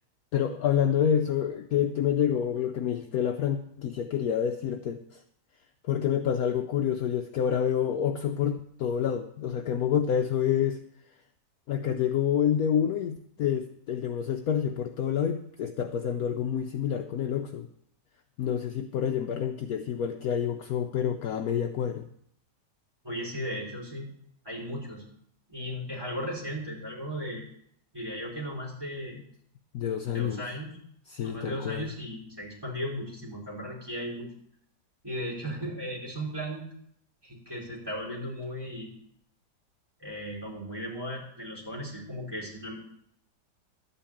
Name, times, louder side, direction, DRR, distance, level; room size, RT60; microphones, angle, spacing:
voice 1, 0.3-5.2 5.8-10.8 11.7-17.7 18.4-22.1 29.7-30.4 31.1-31.9, left 9 dB, 65° left, 5 dB, 1.0 m, -28 dB
voice 2, 23.0-24.1 24.4-25.0 25.5-27.4 27.9-29.2 30.0-30.8 31.2-34.3 35.0-36.7 37.2-38.9 40.0-42.7, equal, 10° right, -5 dB, 4.3 m, -36 dB
12.0 x 5.6 x 8.6 m, 0.69 s
omnidirectional pair, 1.9 m